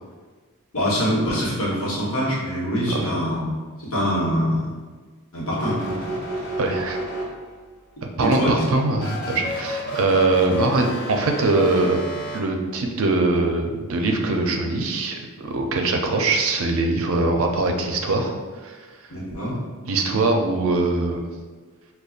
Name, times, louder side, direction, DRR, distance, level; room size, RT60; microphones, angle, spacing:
voice 1, 0.7-3.4 3.8-4.7 5.3-6.0 6.3-6.5 8.2-8.5 19.1-19.6, equal, 65° left, -5 dB, 1.0 m, -24 dB
sound 1, 5.5-7.7 8.9-12.4, equal, 50° left, 0.6 m, -31 dB
voice 2, 6.6-7.0 8.2-12.0 12.3-18.3 18.6-18.8 19.8-21.2, right 2 dB, 65° right, 3 dB, 0.4 m, -22 dB
5.0 x 2.2 x 2.4 m, 1.4 s
head